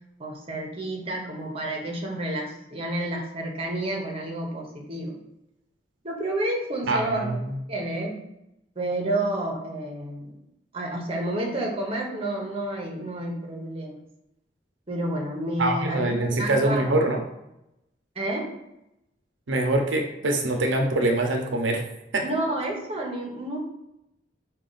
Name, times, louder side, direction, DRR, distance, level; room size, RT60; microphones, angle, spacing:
voice 1, 0.2-5.1 6.0-7.4 7.7-8.2 8.8-10.4 10.7-14.0 14.9-16.9 18.2-18.5 22.2-23.6, right 1 dB, 35° right, 0 dB, 0.8 m, -30 dB
voice 2, 6.9-7.4 15.6-17.2 19.5-21.8 22.1-22.3, right 2 dB, 85° right, 3 dB, 0.6 m, -24 dB
4.9 x 2.4 x 3.9 m, 0.86 s
head